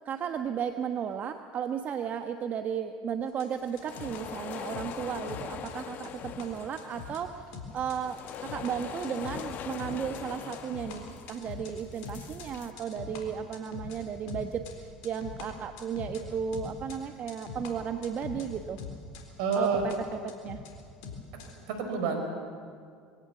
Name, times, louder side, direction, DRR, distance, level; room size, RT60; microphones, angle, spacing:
voice 1, 0.0-7.4 7.7-18.8 19.5-20.6, right 7 dB, 45° right, 7 dB, 1.1 m, -34 dB
sound 1, 3.3-4.2 4.5-5.0 5.3-6.5 6.8-7.3 7.5-8.0 8.3-19.2 19.5-20.0 20.3-21.6, left 5 dB, 70° left, 3.8 m, -43 dB
sound 2, 3.6-12.7, left 9 dB, 50° left, 1.4 m, -42 dB
voice 2, 19.4-19.8 21.3-21.4 21.7-22.2, right 5 dB, 70° right, 5 dB, 4.9 m, -28 dB
22.5 x 17.0 x 8.2 m, 2.3 s
hypercardioid pair, 70°, 4 cm